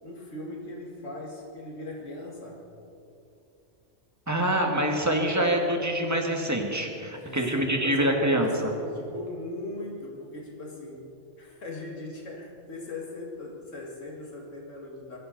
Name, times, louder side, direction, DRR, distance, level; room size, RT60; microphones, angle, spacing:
voice 1, 0.0-2.7 7.1-11.1 11.4-15.2, left 2 dB, 85° left, -2 dB, 2.5 m, -39 dB
voice 2, 4.3-8.5, right 1 dB, 15° right, 1 dB, 1.8 m, -25 dB
23.5 x 14.0 x 4.1 m, 2.7 s
omnidirectional pair, 1.3 m